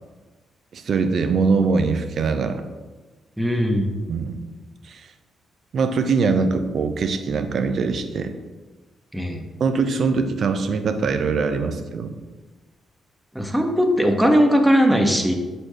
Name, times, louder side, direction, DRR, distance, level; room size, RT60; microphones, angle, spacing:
voice 1, 0.7-2.6 4.1-4.4 4.8-5.1 5.7-8.3 9.6-12.1, right 4 dB, 60° right, 7 dB, 0.6 m, -22 dB
voice 2, 3.4-3.9 9.1-9.4 13.3-15.3, equal, 5° right, 3 dB, 1.1 m, -19 dB
7.2 x 4.2 x 3.2 m, 1.2 s
hypercardioid pair, 40°, 0 cm